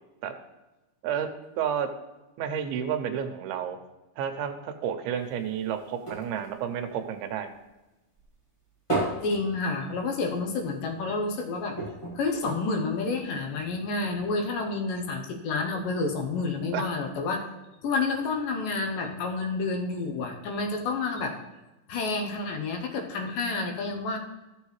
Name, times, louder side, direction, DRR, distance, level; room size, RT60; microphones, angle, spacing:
voice 1, 1.0-1.9 2.4-3.8 4.2-7.5 12.4-12.6 16.7-16.9, right 8 dB, 90° right, 8 dB, 2.7 m, -31 dB
sound 1, 5.1-7.8 8.2-10.4 10.7-10.9 11.1-11.3 11.7-13.2 13.9-14.0, right 2 dB, 15° left, 1.2 m, -35 dB
voice 2, 9.2-11.8 12.2-17.4 17.8-21.4 21.9-24.2, left 3 dB, 70° left, 3 dB, 2.4 m, -29 dB
14.5 x 6.8 x 3.2 m, 1.0 s
omnidirectional pair, 4.4 m